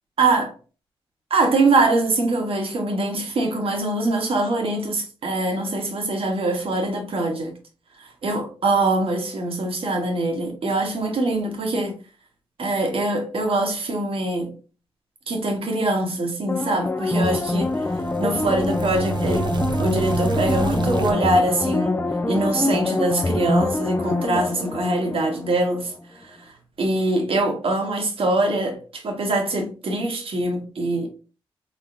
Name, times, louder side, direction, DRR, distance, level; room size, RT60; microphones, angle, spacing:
voice 1, 0.2-0.5 1.3-7.5 8.0-12.0 12.6-14.5 15.3-17.8 18.2-19.5 19.8-25.9 26.2-31.1, right 2 dB, 70° right, 1.2 m, -23 dB
sound 1, 16.5-25.9 26.2-26.3, left 2 dB, 20° left, 0.5 m, -25 dB
sound 2, 17.3-21.1, right 4 dB, 50° right, 0.6 m, -28 dB
3.4 x 3.4 x 2.6 m
cardioid pair, 50°, 10 cm